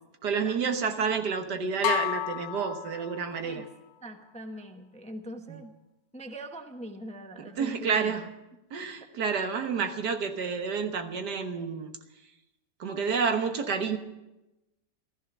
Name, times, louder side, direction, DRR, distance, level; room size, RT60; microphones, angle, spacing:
voice 1, 0.2-3.6 7.6-8.3 8.7-11.9 12.8-14.0, right 5 dB, 70° right, 7 dB, 1.8 m, -29 dB
sound 1, 1.8-3.6, left 12 dB, 90° left, 1.4 m, -31 dB
voice 2, 4.0-5.7 6.1-8.1 9.6-9.7, right 1 dB, 5° left, 6 dB, 0.7 m, -42 dB
15.0 x 14.5 x 6.0 m, 0.98 s
omnidirectional pair, 1.8 m